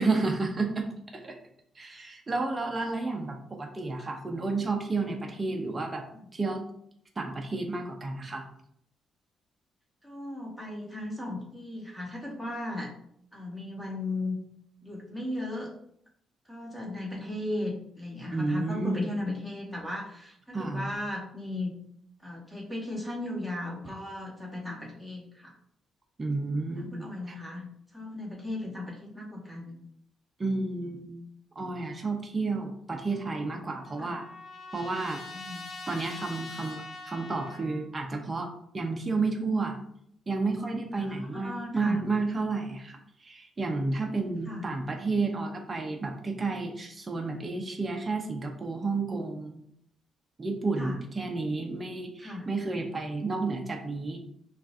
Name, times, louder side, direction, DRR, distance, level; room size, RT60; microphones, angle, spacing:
voice 1, 0.0-1.4 1.8-6.1 6.3-6.6 7.2-8.5 18.3-19.1 20.5-20.8 26.2-27.4 30.4-31.2 31.6-34.2 34.7-35.2 35.9-39.8 40.3-49.6 50.4-54.2, right 3 dB, 25° right, 2 dB, 0.7 m, -31 dB
voice 2, 10.0-12.9 13.3-14.4 14.8-15.7 16.5-21.8 22.2-25.5 26.7-27.6 27.9-29.8 34.0-34.2 35.3-35.7 40.9-42.0 44.4-44.7 50.8-51.0 52.2-52.5, left 1 dB, 5° left, -4 dB, 1.6 m, -36 dB
Trumpet, 33.1-37.8, left 3 dB, 50° left, 0.8 m, -44 dB
5.8 x 2.5 x 2.6 m, 0.69 s
cardioid pair, 90°, 0 cm